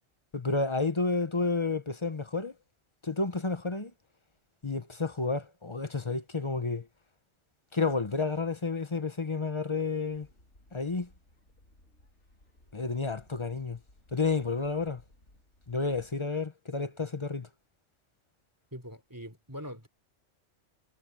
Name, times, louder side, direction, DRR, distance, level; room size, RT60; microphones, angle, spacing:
voice 1, 0.3-2.5 3.0-3.9 4.6-6.9 7.7-10.3 10.7-11.1 12.7-13.8 14.1-15.0 15.7-17.5, left 4 dB, 25° left, 0.9 m, -30 dB
sound 1, 10.1-16.2, left 1 dB, 70° left, 4.6 m, -61 dB
voice 2, 18.7-19.9, equal, 15° right, 3.4 m, -42 dB
omnidirectional pair, 1.3 m